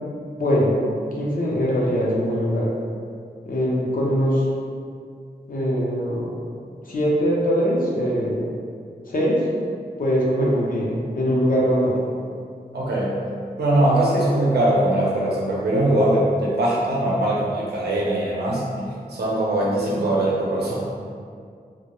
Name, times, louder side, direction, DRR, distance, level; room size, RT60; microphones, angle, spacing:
voice 1, 0.4-0.8 1.1-2.7 3.4-4.4 5.5-6.4 6.9-8.5 9.1-9.4 10.0-12.0 14.3-14.4 19.9-20.0, equal, 55° left, -4 dB, 0.6 m, -22 dB
voice 2, 12.7-13.2 13.6-18.7 19.1-20.8, right 1 dB, 80° right, -5 dB, 0.6 m, -21 dB
2.1 x 2.1 x 2.9 m, 2.2 s
wide cardioid pair, 65°, 17 cm